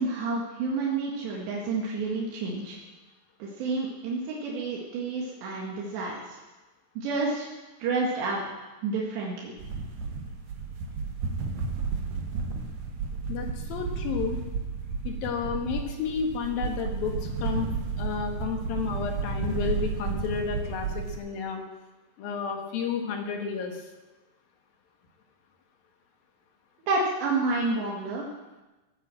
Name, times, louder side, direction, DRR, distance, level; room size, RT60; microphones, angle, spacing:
voice 1, 0.0-2.8 3.4-6.4 7.0-7.5 7.8-9.5 26.9-28.3, right 3 dB, 85° right, -3 dB, 4.2 m, -29 dB
sound 1, 9.6-21.2, right 5 dB, 60° right, 2.6 m, -32 dB
voice 2, 13.3-14.4 15.0-17.7 18.0-21.6 22.2-23.8, left 6 dB, 65° left, 3 dB, 3.3 m, -31 dB
17.5 x 9.2 x 7.7 m, 1.1 s
omnidirectional pair, 4.9 m